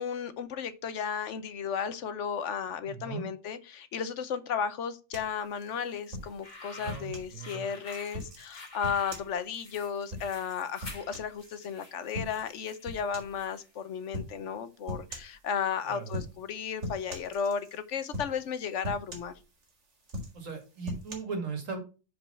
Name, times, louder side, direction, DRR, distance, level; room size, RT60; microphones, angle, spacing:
voice 1, 0.0-19.3, left 7 dB, 70° left, 1.0 m, -34 dB
voice 2, 2.8-3.3 6.8-7.7 15.8-16.2 20.3-21.8, right 5 dB, 80° right, 2.1 m, -38 dB
sound 1, 5.1-7.3 7.9-11.7 12.1-12.5 12.8-13.4 14.1-14.4 14.9-15.4 16.0-16.5 16.8-17.8 18.1-18.5 18.8-19.7 20.0-21.1, left 1 dB, 60° right, 2.1 m, -40 dB
sound 2, 6.2-13.8, left 2 dB, 35° left, 1.4 m, -49 dB
5.2 x 4.7 x 5.4 m
omnidirectional pair, 1.3 m